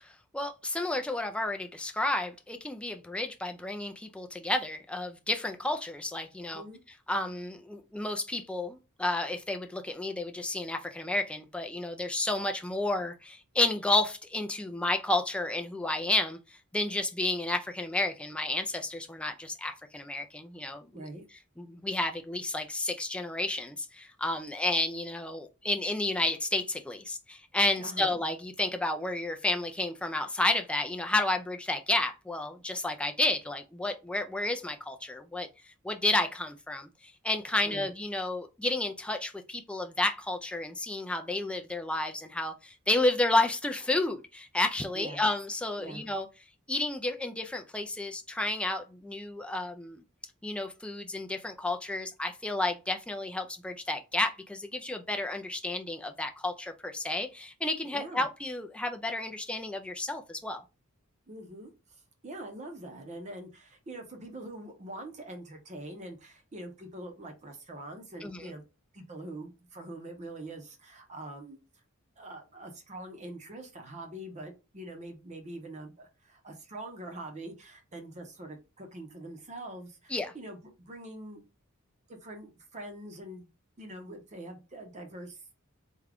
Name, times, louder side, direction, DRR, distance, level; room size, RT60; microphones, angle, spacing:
voice 1, 0.0-6.6 7.1-16.4 16.7-21.0 21.6-35.5 35.8-46.3 46.7-50.0 50.4-60.6 68.2-68.5 80.1-80.3, left 2 dB, 5° left, 0.3 m, -31 dB
voice 2, 20.9-21.3 27.8-28.2 37.6-37.9 44.9-45.2 45.8-46.1 57.9-58.2 61.3-61.7 62.2-68.6 68.9-71.6 72.2-81.4 82.1-83.5 83.8-85.4, right 1 dB, 35° right, 0.7 m, -44 dB
3.6 x 2.2 x 3.4 m
head